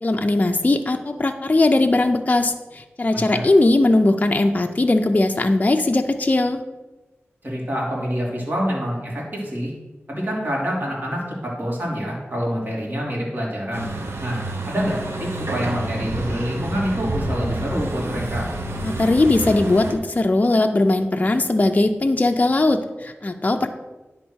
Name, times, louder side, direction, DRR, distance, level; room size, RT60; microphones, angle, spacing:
voice 1, 0.0-6.6 18.8-23.7, left 2 dB, 35° left, 5 dB, 0.5 m, -19 dB
voice 2, 3.1-3.5 7.4-9.7 10.1-13.9 14.2-18.5, equal, 45° right, -4 dB, 3.0 m, -26 dB
Truck, 13.7-20.0, right 1 dB, 70° right, 1.1 m, -28 dB
9.9 x 3.6 x 6.2 m, 1.1 s
wide cardioid pair, 75°, 5 cm